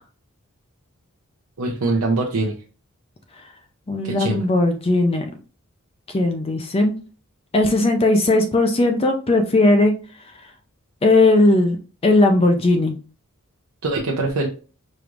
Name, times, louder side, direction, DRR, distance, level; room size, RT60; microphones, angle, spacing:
voice 1, 1.6-2.5 4.0-4.4 13.8-14.5, right 2 dB, 75° right, -1 dB, 0.8 m, -23 dB
voice 2, 3.9-5.2 6.1-6.9 7.5-9.9 11.0-11.8 12.0-13.0, left 2 dB, 25° left, 5 dB, 0.5 m, -17 dB
5.0 x 3.1 x 2.5 m, 0.36 s
head